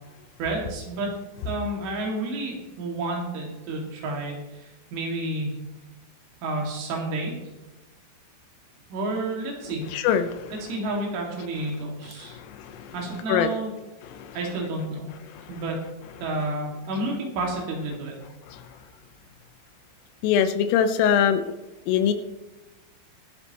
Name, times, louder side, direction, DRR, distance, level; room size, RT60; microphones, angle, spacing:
voice 1, 0.4-1.1 1.5-5.6 6.4-7.3 8.9-9.8 10.5-12.4 12.9-13.7 14.3-15.1 15.5-15.8 16.2-18.2, right 2 dB, 70° right, -1 dB, 4.6 m, -30 dB
voice 2, 9.9-10.3 13.3-13.5 20.2-21.5 21.9-22.1, left 8 dB, 85° left, 9 dB, 3.5 m, -21 dB
23.5 x 8.0 x 3.0 m, 1.1 s
omnidirectional pair, 5.8 m